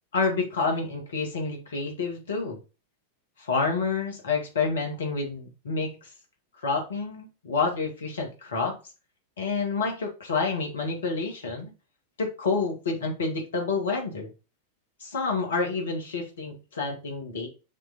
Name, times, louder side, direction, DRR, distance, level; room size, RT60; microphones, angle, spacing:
voice 1, 0.1-2.6 3.4-6.0 6.6-8.8 9.4-11.7 12.2-14.3 15.0-17.5, left 4 dB, 65° left, 2 dB, 2.1 m, -28 dB
6.6 x 3.9 x 5.1 m, 0.31 s
figure-of-eight pair, 90°, 0 cm